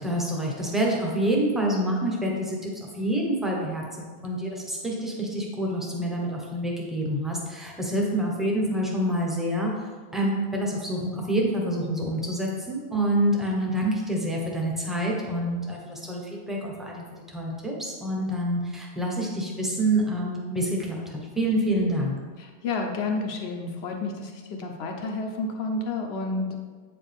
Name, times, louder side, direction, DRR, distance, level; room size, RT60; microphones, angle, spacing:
voice 1, 0.0-9.7 10.1-22.1, right 1 dB, ahead, -2 dB, 1.0 m, -27 dB
voice 2, 22.4-26.6, left 3 dB, 60° left, 2 dB, 1.1 m, -30 dB
8.5 x 4.9 x 3.5 m, 1.5 s
omnidirectional pair, 1.2 m